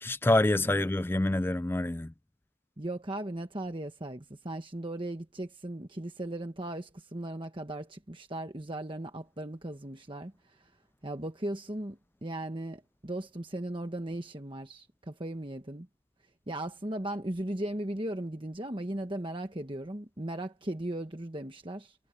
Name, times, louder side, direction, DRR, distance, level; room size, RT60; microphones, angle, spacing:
voice 1, 0.0-2.1, left 1 dB, 10° left, 0.3 m, -26 dB
voice 2, 2.8-10.7 11.0-15.9 16.5-22.0, right 1 dB, 25° right, 1.3 m, -37 dB
head